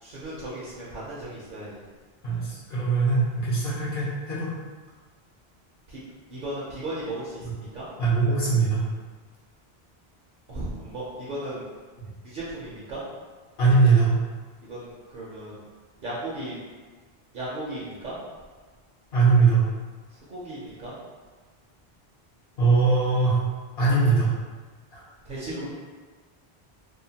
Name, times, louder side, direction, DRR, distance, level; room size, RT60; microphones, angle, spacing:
voice 1, 0.0-1.8 2.3-2.5 5.9-6.0 6.3-7.8 10.5-11.6 12.2-13.0 14.7-15.6 16.0-16.6 17.3-18.1 20.3-20.9 25.3-25.7, right 1 dB, 60° right, -7 dB, 0.7 m, -36 dB
voice 2, 2.2-4.5 7.4-7.5 8.0-8.8 13.6-14.1 19.1-19.6 22.6-23.4 23.8-24.3 24.9-25.0, right 4 dB, 75° left, -8 dB, 1.0 m, -21 dB
2.7 x 2.1 x 2.7 m, 1.4 s
omnidirectional pair, 1.1 m